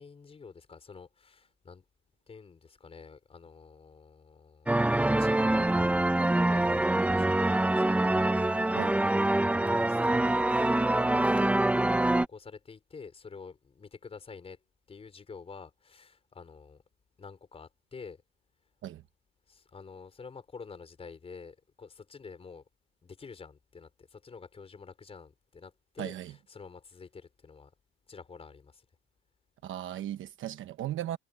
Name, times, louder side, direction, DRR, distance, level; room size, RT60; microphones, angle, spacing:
voice 1, 0.0-1.8 2.3-4.7 5.1-5.8 6.3-8.7 9.1-11.6 12.1-14.6 14.9-16.8 17.2-18.2 19.5-22.6 23.0-27.7 28.1-28.8, left 5 dB, 20° left, 4.7 m, -48 dB
sound 1, 4.7-12.3, right 1 dB, 5° right, 0.6 m, -25 dB
voice 2, 26.0-26.3 29.6-31.2, right 12 dB, 45° right, 1.0 m, -36 dB
cardioid pair, 160°, 29 cm